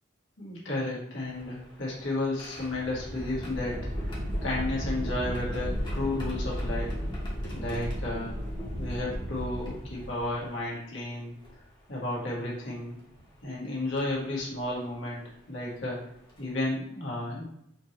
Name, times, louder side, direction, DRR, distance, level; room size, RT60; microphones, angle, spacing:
voice 1, 0.4-6.9 7.5-8.4 8.8-11.3 11.9-13.0 13.4-15.2 15.5-16.0 16.4-17.4, left 2 dB, 90° left, -5 dB, 1.5 m, -33 dB
sound 1, 1.2-10.5 11.4-11.5 13.0-13.2 14.0-14.2 15.8-15.9 16.3-16.5, equal, 25° left, 1.1 m, -34 dB
4.4 x 2.8 x 3.0 m, 0.76 s
head